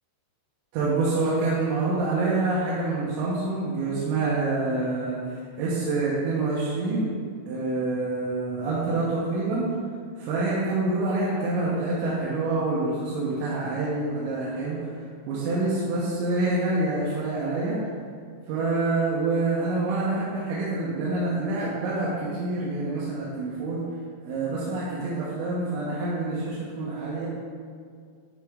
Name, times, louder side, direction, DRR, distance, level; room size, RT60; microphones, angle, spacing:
voice 1, 0.7-7.1 7.5-9.7 10.2-14.8 15.3-17.8 18.5-23.8 24.2-27.3, right 2 dB, 80° right, -7 dB, 3.2 m, -26 dB
10.5 x 3.8 x 3.6 m, 2.1 s
omnidirectional pair, 5.4 m